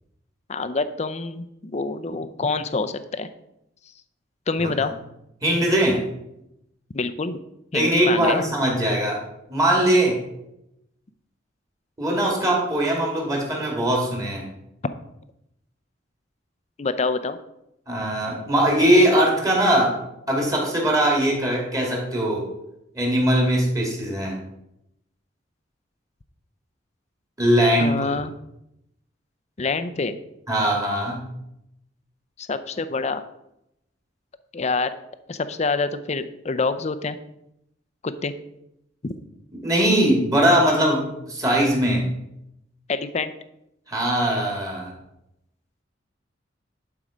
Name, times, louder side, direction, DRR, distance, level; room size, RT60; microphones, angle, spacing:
voice 1, 0.5-3.3 4.5-4.9 6.9-7.4 7.7-8.5 16.8-17.4 27.8-28.3 29.6-30.2 32.4-33.2 34.5-34.9 35.3-37.2 38.0-38.3 39.0-39.1 42.9-43.3, left 3 dB, 35° left, 11 dB, 0.5 m, -26 dB
voice 2, 5.4-6.0 7.7-9.2 9.5-10.2 12.0-14.4 17.9-19.9 20.3-22.4 22.9-24.3 27.4-27.9 30.5-31.3 39.6-42.0 43.9-44.9, right 1 dB, 20° right, -1 dB, 2.5 m, -20 dB
11.5 x 4.7 x 5.1 m, 0.83 s
head